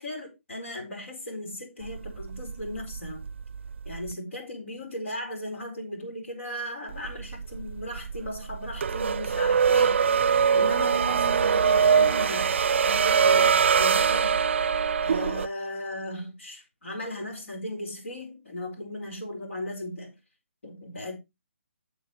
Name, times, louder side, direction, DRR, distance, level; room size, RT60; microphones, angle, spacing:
voice 1, 0.0-3.3 3.8-10.0 10.5-12.6 12.9-14.4 15.0-20.2 20.6-21.2, left 1 dB, 75° left, 4.4 m, -36 dB
sound 1, 1.8-4.1 6.9-15.5, right 6 dB, 65° right, 0.4 m, -23 dB
10.5 x 6.8 x 3.1 m
hypercardioid pair, 155°, 7 cm